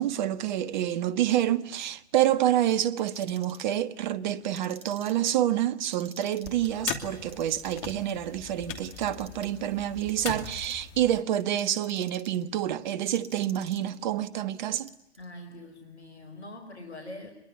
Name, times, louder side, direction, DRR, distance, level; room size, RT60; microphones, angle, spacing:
voice 1, 0.0-14.9, right 12 dB, 45° right, 1.4 m, -28 dB
Clock, 2.9-3.7 4.4-5.3 5.8-6.7 7.2-8.1 8.6-9.5 10.0-10.9 11.4-12.4 13.1-14.0 14.6-15.3, right 4 dB, 20° right, 3.5 m, -50 dB
sound 1, 6.4-11.2, left 9 dB, 30° left, 2.7 m, -40 dB
voice 2, 15.2-17.3, left 1 dB, 80° left, 4.5 m, -43 dB
25.5 x 22.5 x 9.5 m
figure-of-eight pair, 120°, 33 cm